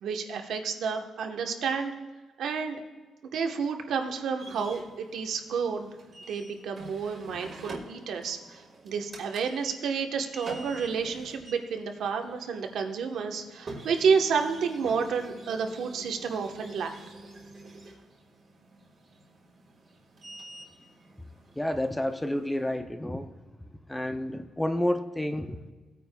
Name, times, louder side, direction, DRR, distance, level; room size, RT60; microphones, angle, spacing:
voice 1, 0.0-1.9 2.4-2.8 3.3-5.9 6.3-16.9, right 6 dB, 70° right, 4 dB, 1.1 m, -30 dB
sound 1, 4.4-22.7, right 2 dB, 40° right, 1.6 m, -48 dB
voice 2, 21.6-23.3 23.9-25.7, left 1 dB, 5° left, 8 dB, 0.4 m, -30 dB
18.0 x 9.2 x 2.3 m, 1.3 s
cardioid pair, 145°, 0 cm